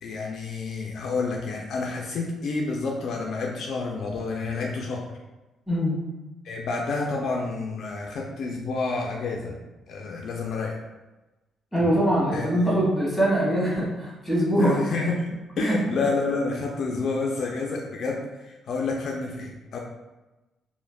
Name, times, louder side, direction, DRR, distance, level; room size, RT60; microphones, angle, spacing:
voice 1, 0.0-5.0 6.4-9.5 9.9-10.8 12.3-12.5 14.6-15.2 15.6-19.8, left 3 dB, 65° left, 0 dB, 0.3 m, -29 dB
voice 2, 5.7-6.0 11.7-14.8 15.6-15.8, right 1 dB, 5° left, -7 dB, 1.3 m, -23 dB
3.2 x 2.0 x 2.3 m, 1.1 s
cardioid pair, 90°, 0 cm